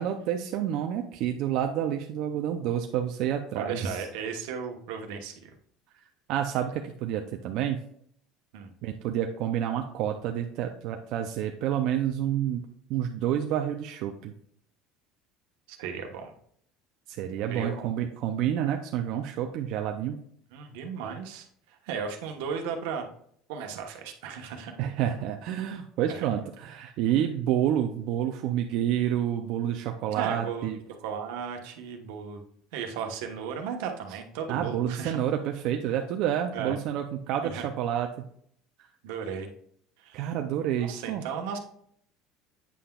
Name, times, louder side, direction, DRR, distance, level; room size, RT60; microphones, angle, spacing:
voice 1, 0.0-4.0 6.3-7.8 8.8-12.6 12.9-14.3 17.1-20.2 24.8-30.8 34.5-38.1 40.1-41.2, right 10 dB, 60° right, 4 dB, 0.5 m, -29 dB
voice 2, 3.5-5.5 8.5-8.7 15.7-16.3 17.5-17.9 20.5-23.1 23.5-24.7 26.1-26.3 30.1-30.7 31.0-32.4 32.7-35.2 36.5-36.8 37.4-37.6 39.0-39.5 40.0-40.3 40.8-41.6, right 6 dB, 85° right, 4 dB, 1.1 m, -35 dB
8.3 x 5.7 x 2.3 m, 0.65 s
cardioid pair, 145°, 0 cm